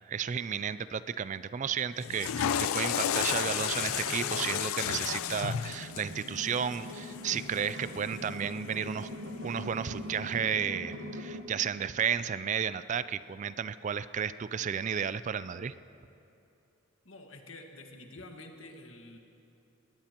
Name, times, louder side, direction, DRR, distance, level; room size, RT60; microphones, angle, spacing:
voice 1, 0.1-9.1 9.4-15.7, right 7 dB, 35° right, 15 dB, 0.3 m, -33 dB
sound 1, 1.8-11.4, equal, 75° right, 1.2 m, -43 dB
Water / Toilet flush, 2.0-8.2, left 9 dB, 90° left, 0.4 m, -33 dB
voice 2, 17.0-19.2, left 2 dB, 70° left, 2 dB, 1.6 m, -48 dB
21.5 x 19.0 x 3.0 m, 2.8 s
head